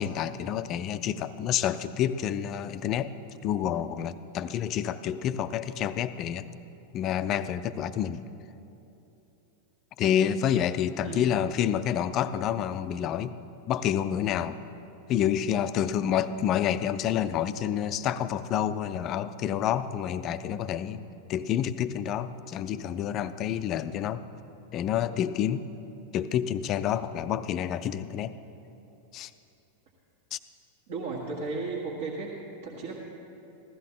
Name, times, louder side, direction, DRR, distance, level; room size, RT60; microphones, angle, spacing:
voice 1, 0.0-3.1 3.4-6.5 6.9-8.2 10.0-13.3 13.7-14.6 15.1-21.0 21.3-24.2 24.7-25.6 26.1-28.3 29.1-29.3 30.3-30.4, left 9 dB, 35° left, 13 dB, 0.4 m, -28 dB
voice 2, 30.9-32.3 32.6-33.0, right 4 dB, 55° right, -5 dB, 1.6 m, -34 dB
16.0 x 13.5 x 3.8 m, 2.9 s
figure-of-eight pair, 90°, 0 cm